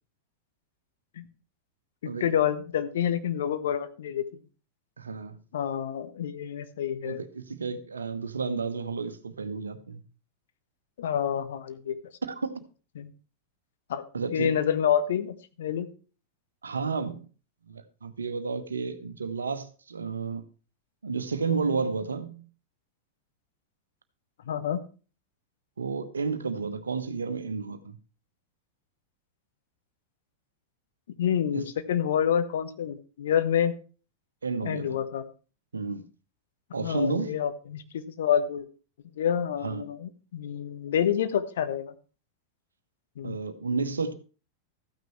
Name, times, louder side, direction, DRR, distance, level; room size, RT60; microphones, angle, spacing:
voice 1, 2.0-4.2 5.5-7.2 11.0-12.0 13.0-13.1 13.9-14.0 14.3-15.9 24.5-24.8 31.2-33.7 34.6-35.2 36.8-38.7 39.2-41.9 43.2-43.4, left 9 dB, 60° left, 1.1 m, -28 dB
voice 2, 5.0-5.4 7.0-10.0 12.2-12.6 14.1-14.6 16.6-17.2 17.7-20.4 21.0-22.4 25.8-28.0 31.5-31.6 34.4-35.0 35.7-36.0 36.7-37.3 39.6-39.8 43.2-44.1, right 4 dB, 75° right, 1.0 m, -31 dB
14.0 x 9.3 x 3.2 m
figure-of-eight pair, 90°, 0 cm